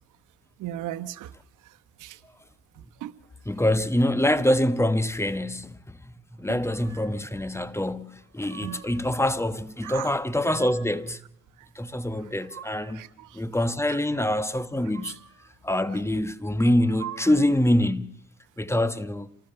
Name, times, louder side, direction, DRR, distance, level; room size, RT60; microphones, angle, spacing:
voice 1, 0.6-1.3 2.0-2.2 3.0-3.1 6.5-6.6 8.6-8.8 9.8-10.1 12.9-13.4 13.9-14.0 15.0-15.1, right 13 dB, 85° right, 1.2 m, -36 dB
voice 2, 3.4-11.2 11.7-13.0 13.3-15.2 15.6-18.2 18.6-19.3, left 1 dB, 10° left, 1.2 m, -25 dB
sound 1, 6.7-7.3 8.1-9.1 10.1-11.1 12.0-13.1 14.7-15.5 16.6-17.7, right 9 dB, 55° right, 2.7 m, -45 dB
28.0 x 19.0 x 6.9 m
cardioid pair, 90°, 30 cm